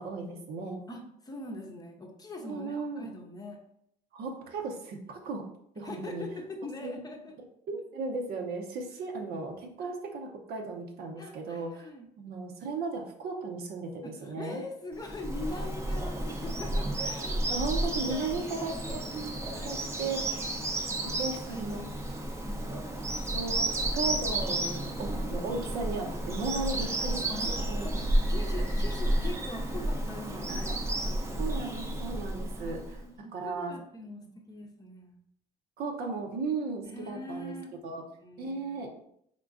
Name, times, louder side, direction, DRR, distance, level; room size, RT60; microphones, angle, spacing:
voice 1, 0.0-0.8 2.4-3.1 4.1-5.5 5.8-6.3 6.8-7.0 7.7-11.9 12.2-14.6 17.0-17.1 17.5-19.4 19.6-20.4 21.2-21.8 23.3-27.9 30.5-30.8 31.4-33.8 35.8-37.5 37.8-38.0 38.4-38.9, right 3 dB, 70° right, 3 dB, 0.7 m, -36 dB
voice 2, 0.9-3.6 5.8-7.3 9.8-9.9 11.2-12.1 14.0-18.8 19.5-20.0 20.4-21.2 21.5-21.9 22.4-22.9 24.6-25.0 27.3-27.6 27.8-30.8 31.0-31.6 32.6-35.1 36.8-37.8 38.2-38.9, left 2 dB, 20° left, 1 dB, 0.7 m, -43 dB
Bird vocalization bird call bird song, 15.0-33.0, right 1 dB, 15° right, 0.6 m, -32 dB
3.7 x 3.6 x 2.5 m, 0.71 s
cardioid pair, 110°, 17 cm